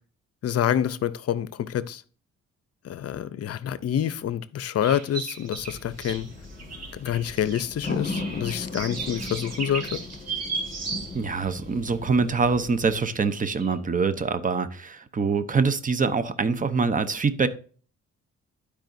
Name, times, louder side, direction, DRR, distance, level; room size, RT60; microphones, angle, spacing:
voice 1, 0.4-2.0 2.8-6.3 6.9-10.0, left 10 dB, 55° left, 0.6 m, -27 dB
sound 1, 4.8-11.5 11.9-12.0 12.9-13.2 13.4-13.7, right 4 dB, 60° right, 2.0 m, -36 dB
sound 2, 5.6-13.0, left 3 dB, 25° left, 1.6 m, -37 dB
voice 2, 11.1-17.5, right 4 dB, 25° right, 0.8 m, -24 dB
12.0 x 4.9 x 2.6 m
cardioid pair, 90°, 30 cm